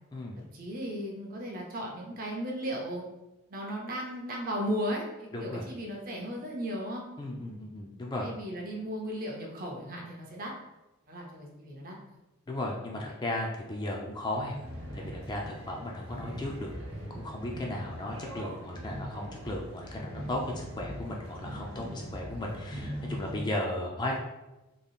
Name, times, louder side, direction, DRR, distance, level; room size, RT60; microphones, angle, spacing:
voice 1, 0.4-3.0 3.5-7.0 8.2-10.5 11.1-11.9 13.0-13.1, equal, 40° right, -1 dB, 0.7 m, -36 dB
voice 2, 5.3-5.7 7.2-8.3 12.5-14.6 14.9-16.7 17.1-24.2, left 1 dB, 20° left, -1 dB, 0.3 m, -35 dB
sound 1, 14.3-23.3, equal, 70° right, 0.9 m, -41 dB
3.7 x 3.5 x 2.4 m, 1.0 s
head